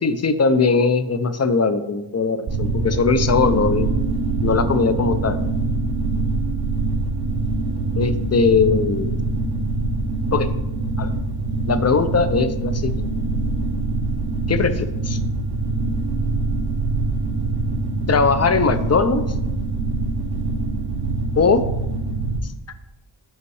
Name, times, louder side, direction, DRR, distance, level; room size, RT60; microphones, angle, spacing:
voice 1, 0.0-3.9 4.4-5.4 8.0-9.2 10.3-10.5 11.0-11.1 11.7-13.0 14.5-15.2 18.1-19.3 21.4-21.6, left 4 dB, 35° left, 11 dB, 0.5 m, -20 dB
sound 1, 2.5-22.4, right 2 dB, 50° right, 0.8 m, -24 dB
5.5 x 5.3 x 4.8 m, 0.95 s
wide cardioid pair, 90°, 49 cm